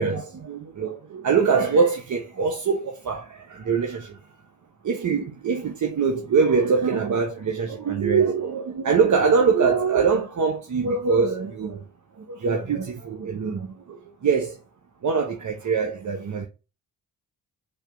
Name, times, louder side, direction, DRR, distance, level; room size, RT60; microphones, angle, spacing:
voice 1, 0.0-4.2 4.8-11.8 12.3-14.6 15.0-16.5, right 5 dB, 45° right, 0.9 m, -23 dB
4.4 x 2.8 x 2.6 m
hypercardioid pair, 45°, 41 cm